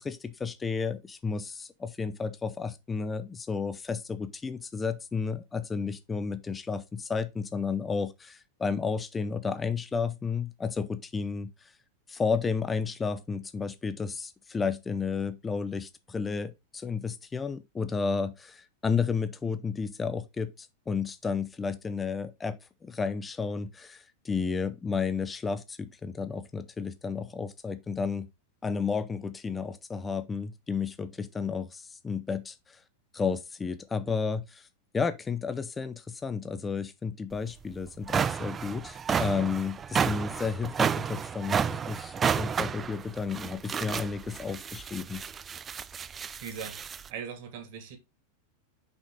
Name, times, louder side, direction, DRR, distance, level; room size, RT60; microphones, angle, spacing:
voice 1, 0.0-11.5 12.1-28.3 28.6-32.8 33.1-34.7 34.9-45.2, left 5 dB, 15° left, 0.7 m, -32 dB
sound 1, 37.3-37.4 37.9-47.1, right 7 dB, 20° right, 0.3 m, -31 dB
voice 2, 46.4-48.0, right 7 dB, 50° right, 1.9 m, -40 dB
6.2 x 5.2 x 3.7 m
figure-of-eight pair, 90°, 0 cm